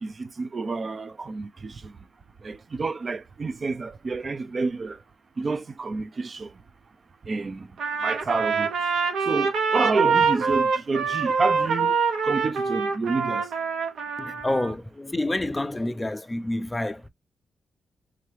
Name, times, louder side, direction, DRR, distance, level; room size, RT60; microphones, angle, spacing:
voice 1, 0.0-1.9 2.4-5.0 5.4-6.5 7.2-7.7 8.0-8.7 9.3-12.0 12.2-13.5, right 4 dB, 45° right, 0.6 m, -29 dB
Trumpet, 7.8-14.7, right 5 dB, 80° right, 0.9 m, -25 dB
voice 2, 14.2-17.1, left 1 dB, 15° left, 0.5 m, -28 dB
3.8 x 2.8 x 3.2 m
cardioid pair, 75°, 0 cm